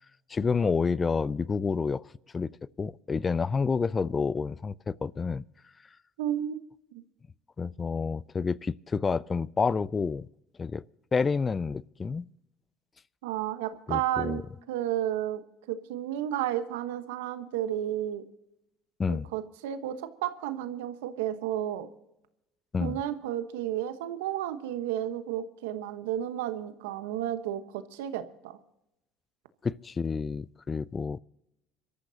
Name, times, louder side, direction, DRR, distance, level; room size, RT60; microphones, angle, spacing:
voice 1, 0.3-2.1 2.3-2.5 2.8-5.4 7.6-10.3 10.6-10.8 11.1-12.3 13.9-14.4 19.0-19.3 22.7-23.0 29.6-31.2, left 5 dB, 30° left, 0.4 m, -29 dB
voice 2, 6.2-6.6 6.9-7.0 13.2-14.4 14.7-15.4 15.7-18.2 19.1-21.9 22.8-28.6, right 11 dB, 85° right, 1.2 m, -32 dB
26.5 x 13.5 x 2.8 m
hypercardioid pair, 80°, 0 cm